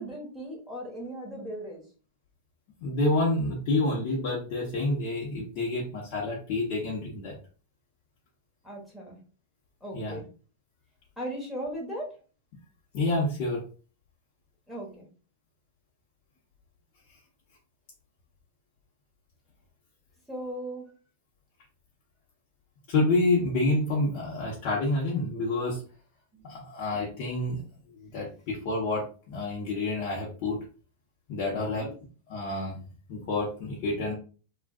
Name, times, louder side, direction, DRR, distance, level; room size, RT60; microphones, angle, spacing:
voice 1, 0.0-1.8 8.6-9.2 9.8-10.3 11.2-12.1 14.7-15.1 20.3-20.8 26.3-26.5 31.5-31.9, right 1 dB, 5° left, -3 dB, 1.3 m, -37 dB
voice 2, 2.8-7.3 9.9-10.2 12.9-13.6 22.9-25.8 26.4-27.6 28.0-30.6 31.3-31.9 32.3-32.8 33.1-34.1, left 2 dB, 50° left, -4 dB, 0.9 m, -28 dB
3.6 x 2.4 x 2.4 m, 0.38 s
supercardioid pair, 135°, 0 cm